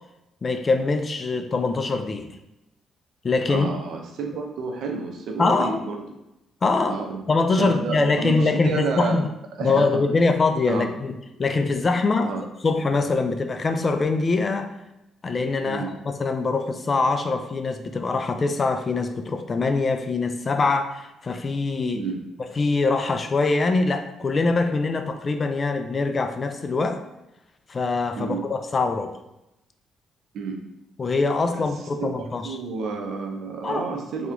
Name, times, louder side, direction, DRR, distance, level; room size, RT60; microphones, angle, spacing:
voice 1, 0.4-2.3 3.2-3.7 5.4-5.8 6.6-7.0 7.3-9.2 9.6-12.3 12.6-14.8 15.2-22.0 22.6-27.0 27.7-29.2 31.0-32.6 33.6-33.8, left 3 dB, 35° left, 7 dB, 0.4 m, -23 dB
voice 2, 3.5-6.0 6.9-7.2 7.6-9.3 9.6-10.0 10.7-10.9 12.2-12.4 15.6-15.9 21.9-22.2 28.2-28.4 30.3-30.6 31.5-31.6 32.0-34.3, right 4 dB, 75° right, 3 dB, 0.7 m, -30 dB
3.5 x 2.9 x 3.7 m, 0.90 s
cardioid pair, 90°, 0 cm